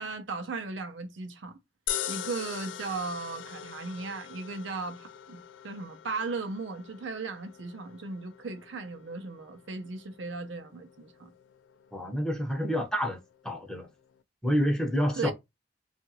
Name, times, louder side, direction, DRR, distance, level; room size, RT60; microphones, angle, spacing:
voice 1, 0.0-1.6 2.1-11.3 15.2-15.3, right 4 dB, 85° right, 0.6 m, -37 dB
sound 1, 1.9-14.2, left 10 dB, 85° left, 0.3 m, -43 dB
voice 2, 11.9-13.2 13.4-13.9 14.4-15.3, equal, 5° left, 0.6 m, -28 dB
2.8 x 2.4 x 2.8 m
head